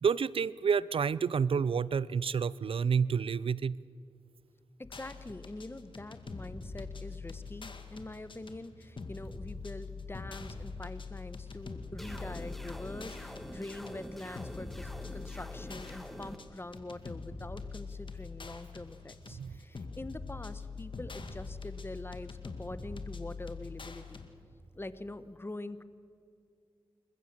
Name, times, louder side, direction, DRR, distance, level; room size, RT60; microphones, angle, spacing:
voice 1, 0.0-3.8 19.3-19.6, right 6 dB, 70° right, 20 dB, 0.4 m, -29 dB
sound 1, 4.8-24.3, left 4 dB, 60° left, 2.1 m, -44 dB
voice 2, 4.8-24.3 24.7-25.8, left 2 dB, 25° left, 13 dB, 1.1 m, -44 dB
sound 2, 12.0-16.4, equal, ahead, 1.7 m, -45 dB
28.0 x 15.0 x 7.5 m, 2.4 s
cardioid pair, 55°, 10 cm